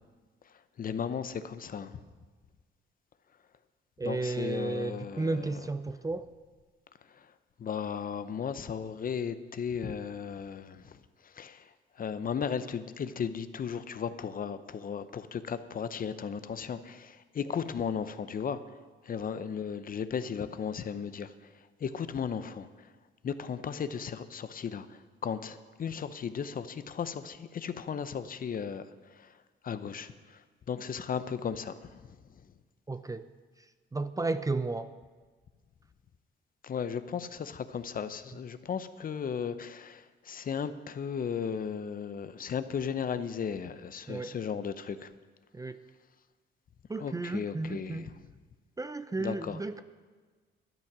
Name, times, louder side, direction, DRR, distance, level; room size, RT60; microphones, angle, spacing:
voice 1, 0.8-2.0 4.0-5.5 7.1-7.3 7.6-11.7 12.0-18.6 19.0-21.5 21.8-22.9 23.2-29.4 29.6-30.4 30.7-32.0 36.6-45.1 47.0-48.1 49.2-49.6, left 7 dB, 45° left, 12 dB, 0.7 m, -36 dB
voice 2, 4.0-6.3 32.9-33.3 33.9-34.9 44.1-44.4 45.5-45.8 46.9-48.1 48.8-49.8, right 3 dB, 15° right, 12 dB, 0.5 m, -33 dB
12.0 x 11.0 x 6.1 m, 1.4 s
cardioid pair, 90°, 20 cm